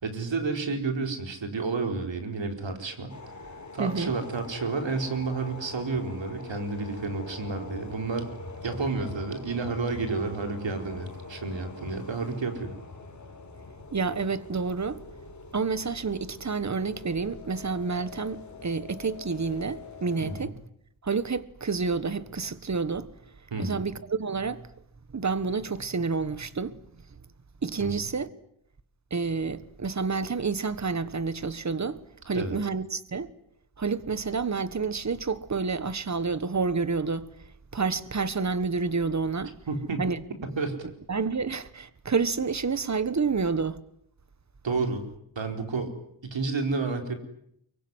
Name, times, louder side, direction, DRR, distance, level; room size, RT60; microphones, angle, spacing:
voice 1, 0.0-3.2 3.7-8.3 8.6-12.7 20.2-20.5 23.5-23.8 27.8-28.1 32.3-32.5 39.7-40.1 40.4-40.8 44.6-45.0 45.4-45.9 46.2-47.1, right 4 dB, 75° right, 4.5 m, -30 dB
sound 1, 3.1-20.4, left 3 dB, 40° left, 4.8 m, -44 dB
voice 2, 3.8-4.1 13.9-15.0 15.5-20.5 21.0-23.1 23.6-24.7 25.1-26.8 27.6-28.3 29.1-32.0 32.2-33.3 33.8-37.3 37.7-39.6 40.0-40.2 41.1-43.8, right 4 dB, 35° right, 1.4 m, -29 dB
24.0 x 23.5 x 9.7 m
wide cardioid pair, 120°, 45 cm